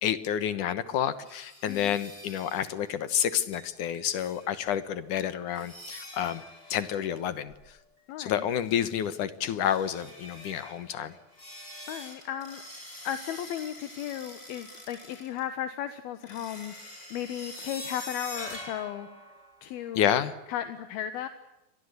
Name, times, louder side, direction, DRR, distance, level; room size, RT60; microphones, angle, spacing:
voice 1, 0.0-6.4 6.7-7.5 8.2-11.1 19.9-20.4, left 9 dB, 65° left, 14 dB, 2.5 m, -29 dB
sound 1, 1.3-2.7 3.2-3.3 3.5-3.7 3.9-4.7 5.5-7.7 8.4-9.2 9.6-15.4 16.2-19.9, left 1 dB, 20° left, 7.0 m, -45 dB
voice 2, 8.1-8.5 11.9-12.6 13.0-19.1 19.6-20.1 20.5-21.3, left 10 dB, 80° left, 11 dB, 3.2 m, -35 dB
29.0 x 23.5 x 8.1 m, 0.96 s
omnidirectional pair, 4.4 m